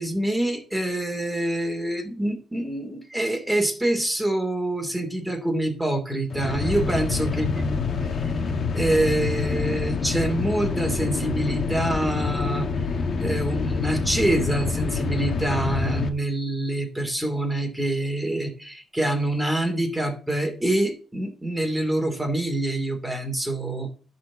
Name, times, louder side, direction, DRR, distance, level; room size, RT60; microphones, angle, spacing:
voice 1, 0.0-7.8 8.7-12.7 13.2-23.9, right 1 dB, 5° right, 4 dB, 2.8 m, -26 dB
sound 1, 6.3-16.1, left 4 dB, 50° left, 1.5 m, -27 dB
11.0 x 4.5 x 7.4 m, 0.40 s
cardioid pair, 90°, 0 cm